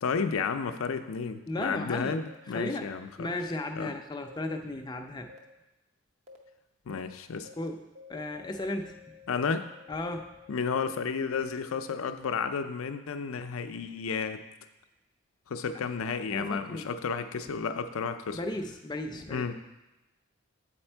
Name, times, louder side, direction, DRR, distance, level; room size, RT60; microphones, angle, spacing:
voice 1, 0.0-3.3 3.8-3.9 6.9-7.5 9.3-9.7 10.5-14.4 15.5-18.4 19.3-19.5, left 5 dB, 80° left, 9 dB, 0.5 m, -32 dB
voice 2, 1.5-2.2 2.5-2.9 3.2-5.3 7.6-7.8 8.1-9.1 9.9-10.3 16.3-16.9 18.3-19.5, left 1 dB, 20° left, 4 dB, 0.4 m, -35 dB
sound 1, 2.3-2.4 3.3-3.4 4.3-4.4 5.3-5.4 6.3-6.4 6.9-7.0 7.5-7.6 8.0-11.1, left 6 dB, 30° right, 0.6 m, -52 dB
7.9 x 4.2 x 4.4 m, 1.0 s
head